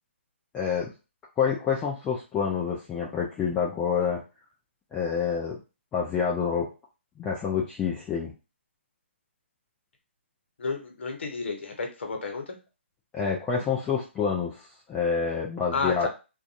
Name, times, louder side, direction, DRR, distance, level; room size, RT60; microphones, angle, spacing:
voice 1, 0.5-0.9 1.4-4.2 4.9-5.6 5.9-6.7 7.2-8.3 13.1-16.1, left 6 dB, 10° left, -3 dB, 0.4 m, -27 dB
voice 2, 10.6-12.6 15.7-16.1, left 4 dB, 65° left, 3 dB, 0.9 m, -31 dB
2.4 x 2.3 x 2.5 m, 0.29 s
figure-of-eight pair, 145°, 7 cm